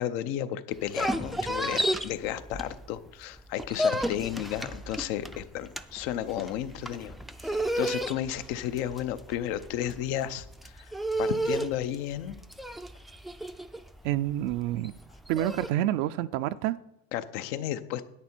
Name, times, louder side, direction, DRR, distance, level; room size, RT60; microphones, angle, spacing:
voice 1, 0.0-7.1 7.4-10.9 11.2-12.4 17.1-18.0, left 11 dB, 75° left, 13 dB, 0.8 m, -33 dB
sound 1, 0.7-3.1 3.4-15.7, right 1 dB, ahead, 0.4 m, -32 dB
voice 2, 14.0-14.9 15.3-16.8, right 13 dB, 75° right, 10 dB, 0.5 m, -28 dB
10.0 x 8.6 x 4.4 m, 0.83 s
supercardioid pair, 105°, 30 cm